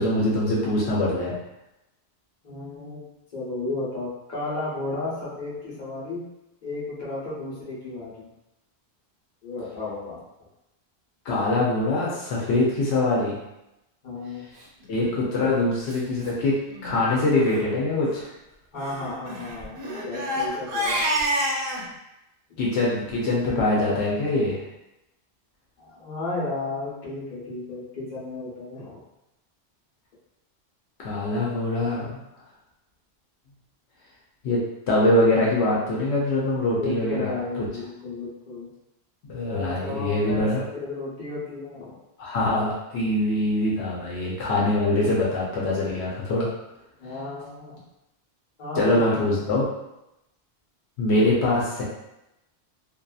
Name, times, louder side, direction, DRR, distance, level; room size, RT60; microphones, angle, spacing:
voice 1, 0.0-1.3 11.3-13.4 14.9-16.6 16.8-18.3 22.6-24.6 31.0-32.2 34.4-34.6 34.9-37.3 39.3-40.6 42.2-46.5 48.8-49.6 51.0-51.8, left 2 dB, 80° left, -5 dB, 0.9 m, -23 dB
voice 2, 2.4-3.1 3.3-6.2 6.6-8.3 9.4-10.2 14.0-14.4 18.7-19.8 20.0-21.0 25.8-29.0 36.5-38.7 39.4-42.0 47.0-47.7 48.6-49.5, left 2 dB, 45° left, -7 dB, 1.0 m, -33 dB
Crying sobbing, 15.0-15.2 15.9-16.0 16.2-16.4 16.7-16.9 17.4-17.6 18.8-21.8, equal, 65° right, 0.7 m, -28 dB
2.6 x 2.3 x 2.3 m, 0.91 s
omnidirectional pair, 1.1 m